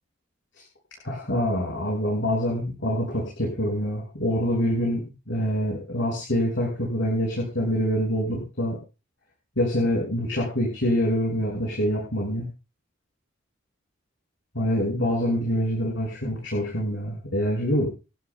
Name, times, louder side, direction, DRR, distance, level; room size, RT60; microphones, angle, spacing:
voice 1, 1.0-8.8 9.6-12.5 14.5-17.9, equal, 70° left, -2 dB, 6.3 m, -25 dB
29.0 x 12.0 x 2.3 m, 0.33 s
head